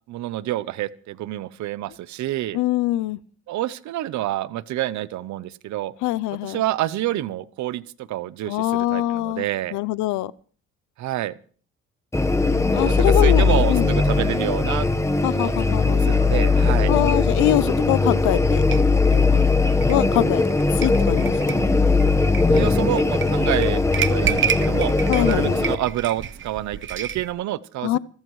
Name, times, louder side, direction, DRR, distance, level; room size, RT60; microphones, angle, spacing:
voice 1, 0.1-2.6 3.5-5.9 6.4-9.8 11.0-11.4 12.8-14.9 15.3-15.5 15.8-16.9 22.5-23.8 24.1-28.0, right 14 dB, 75° right, 0.7 m, -28 dB
voice 2, 2.5-3.2 6.0-6.6 8.5-9.5 9.7-10.3 12.7-14.0 15.2-16.0 16.9-18.7 19.1-19.5 19.9-20.4 20.8-21.7 25.1-25.6 27.8-28.0, left 16 dB, 85° left, 0.6 m, -24 dB
sound 1, 12.1-25.7, left 3 dB, 10° left, 1.2 m, -19 dB
sound 2, 18.7-27.3, right 8 dB, 40° right, 1.0 m, -30 dB
27.5 x 13.5 x 3.2 m
cardioid pair, 100°, 29 cm